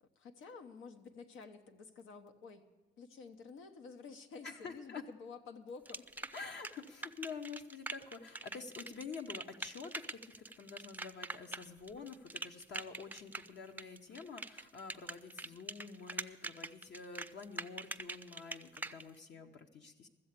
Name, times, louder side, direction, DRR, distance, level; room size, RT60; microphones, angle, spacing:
voice 1, 0.0-2.7 3.0-6.3, left 5 dB, 90° left, 7 dB, 1.0 m, -51 dB
voice 2, 4.4-5.0 6.3-20.1, left 5 dB, 60° left, 4 dB, 0.9 m, -48 dB
sound 1, 5.9-19.0, right 2 dB, 10° right, 0.4 m, -44 dB
14.0 x 7.7 x 8.2 m, 1.1 s
cardioid pair, 90°, 20 cm